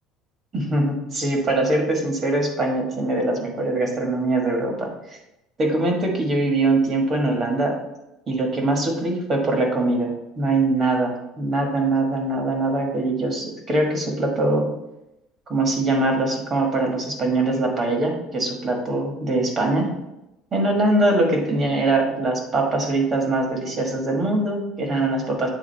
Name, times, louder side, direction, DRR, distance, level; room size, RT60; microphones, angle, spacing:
voice 1, 0.5-4.9 5.6-7.7 8.3-14.7 15.5-19.9 20.5-25.5, right 2 dB, 30° right, 1 dB, 1.4 m, -22 dB
8.8 x 3.5 x 3.3 m, 0.90 s
cardioid pair, 135°, 0 cm